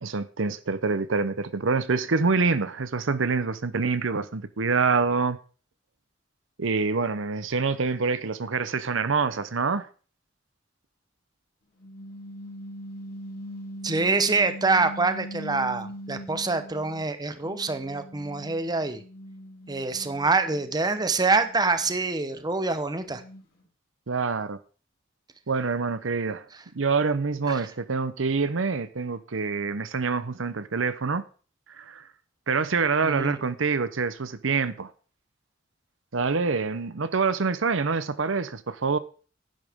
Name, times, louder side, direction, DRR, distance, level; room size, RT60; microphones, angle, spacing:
voice 1, 0.0-5.4 6.6-9.9 24.1-24.6 25.5-26.5 26.7-31.2 31.7-32.1 32.5-34.9 36.1-39.0, right 4 dB, 70° right, 0.8 m, -26 dB
sound 1, 11.8-17.1 17.4-23.6, equal, 50° left, 3.5 m, -42 dB
voice 2, 13.8-19.0 19.7-23.2 27.5-27.6 33.0-33.4, right 3 dB, 20° right, 0.9 m, -25 dB
11.0 x 10.5 x 3.6 m
head